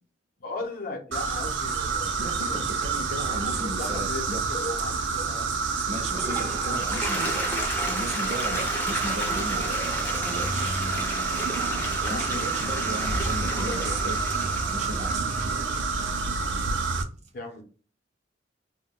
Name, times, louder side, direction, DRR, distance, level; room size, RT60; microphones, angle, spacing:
voice 1, 0.4-2.6 3.1-5.5 6.3-7.0 12.0-12.8 13.5-14.1 17.3-17.6, left 2 dB, 50° left, 0.7 m, -38 dB
sound 1, 1.1-17.0, right 4 dB, 85° right, 0.5 m, -28 dB
voice 2, 2.2-4.4 5.9-7.5 7.8-10.8 12.1-14.2 14.7-15.2, right 1 dB, 40° right, 0.5 m, -36 dB
Toilet flush, 5.9-16.3, equal, 10° left, 0.5 m, -34 dB
sound 2, 9.8-14.4, left 2 dB, 90° left, 0.4 m, -39 dB
2.1 x 2.1 x 3.6 m
head